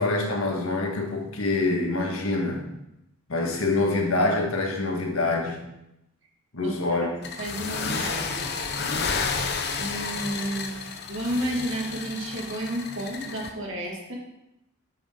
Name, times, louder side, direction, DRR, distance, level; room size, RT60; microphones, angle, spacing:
voice 1, 0.0-2.7 3.3-5.6 6.5-7.1, left 2 dB, 80° left, 2 dB, 1.5 m, -25 dB
voice 2, 6.6-7.1 7.4-8.5 9.8-14.1, right 1 dB, 60° right, -1 dB, 2.2 m, -32 dB
sound 1, 7.2-13.5, left 4 dB, 50° left, 0.7 m, -31 dB
9.8 x 6.2 x 3.7 m, 0.86 s
head